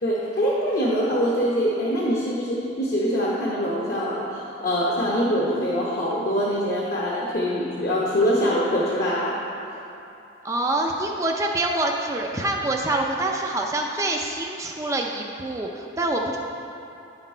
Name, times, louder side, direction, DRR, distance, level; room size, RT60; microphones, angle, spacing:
voice 1, 0.0-9.4, equal, 50° left, -5 dB, 0.9 m, -24 dB
voice 2, 10.4-16.4, right 2 dB, 15° right, 0 dB, 0.4 m, -26 dB
9.2 x 6.0 x 4.4 m, 2.9 s
head